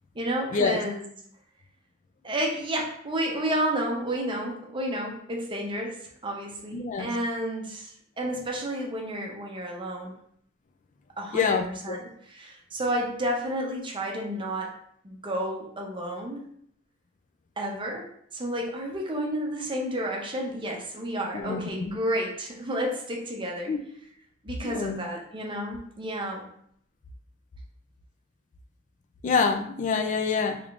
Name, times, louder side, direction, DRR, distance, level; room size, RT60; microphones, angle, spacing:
voice 1, 0.1-1.0 2.2-6.0 6.2-10.1 11.2-11.6 11.8-14.7 15.0-16.4 17.6-18.1 18.3-23.7 24.4-26.4, right 1 dB, 25° right, 0 dB, 0.6 m, -31 dB
voice 2, 6.7-7.1 11.3-12.0 21.3-22.0 23.7-23.8 24.6-25.0 29.2-30.6, left 5 dB, 40° left, 6 dB, 0.3 m, -26 dB
3.5 x 3.2 x 2.4 m, 0.66 s
head